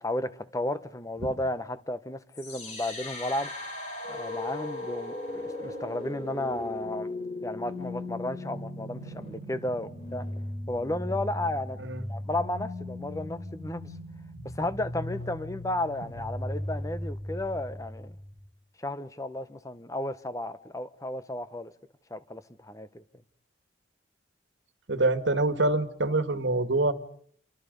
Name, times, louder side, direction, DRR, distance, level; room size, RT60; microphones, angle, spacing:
voice 1, 0.0-3.5 4.1-7.1 7.4-10.3 10.7-11.8 12.1-13.9 14.5-18.2 18.8-21.7 22.1-23.0, left 1 dB, 20° left, 1.0 m, -33 dB
sound 1, 2.3-18.3, left 1 dB, 40° left, 8.0 m, -37 dB
voice 2, 24.9-26.9, right 2 dB, 90° right, 1.8 m, -25 dB
28.5 x 24.0 x 5.3 m
head